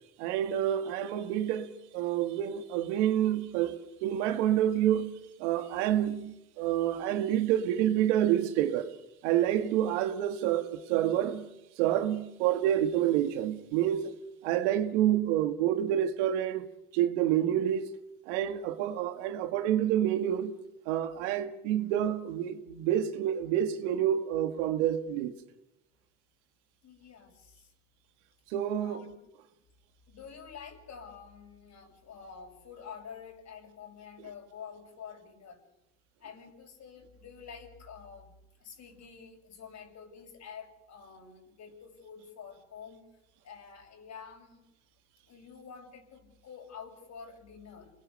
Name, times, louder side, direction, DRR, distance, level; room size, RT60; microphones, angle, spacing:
voice 1, 0.2-8.9 9.2-11.5 11.8-14.2 14.4-16.7 16.9-17.9 18.3-20.6 20.9-25.3 28.5-29.0, right 11 dB, 80° right, 1.9 m, -28 dB
voice 2, 26.8-27.7 28.8-29.1 30.1-35.6 36.2-38.3 38.6-43.0 43.4-44.6 45.3-47.9, left 6 dB, 50° left, 7.0 m, -48 dB
28.0 x 20.5 x 7.0 m
hypercardioid pair, 75°, 35 cm